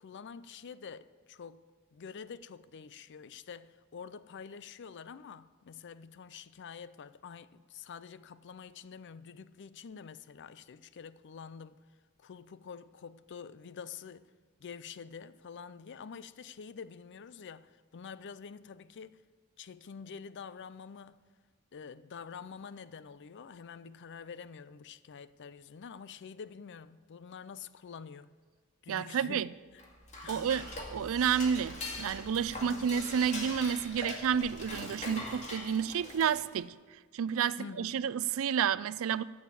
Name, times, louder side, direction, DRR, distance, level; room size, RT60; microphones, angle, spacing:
voice 1, 0.0-1.6 1.9-11.8 12.2-14.3 14.6-19.2 19.6-21.2 21.7-28.3 28.8-29.5 30.2-30.5 32.6-32.9 37.6-38.1, left 6 dB, 55° left, 0.5 m, -47 dB
voice 2, 28.9-29.5 30.3-36.7 37.1-39.2, right 7 dB, 65° right, 0.4 m, -30 dB
Dishes pots and pans / Cutlery silverware, 29.7-36.6, left 1 dB, 35° left, 2.3 m, -42 dB
13.0 x 7.2 x 8.2 m
head